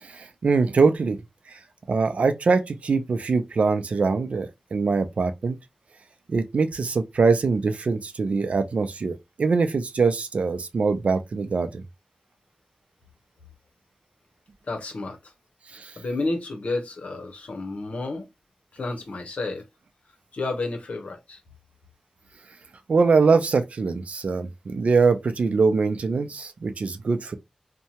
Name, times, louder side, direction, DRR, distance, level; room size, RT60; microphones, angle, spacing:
voice 1, 0.0-1.2 1.5-1.6 1.9-5.6 6.3-11.8 15.7-15.9 22.9-27.4, right 4 dB, 80° right, 0.4 m, -23 dB
voice 2, 14.6-15.3 16.0-18.3 18.7-19.7 20.3-21.4, left 2 dB, 80° left, 0.8 m, -31 dB
2.7 x 2.2 x 2.8 m
wide cardioid pair, 65°, 2 cm